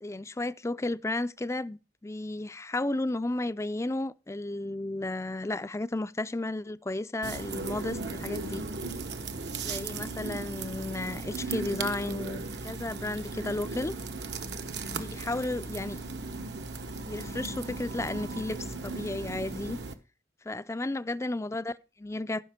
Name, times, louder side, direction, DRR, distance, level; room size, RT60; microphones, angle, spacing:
voice 1, 0.0-8.6 9.6-13.9 14.9-16.1 17.1-19.8 20.4-22.4, left 2 dB, 15° left, 0.4 m, -33 dB
sound 1, 7.2-19.9, right 3 dB, 70° right, 1.1 m, -37 dB
14.5 x 6.0 x 5.1 m
head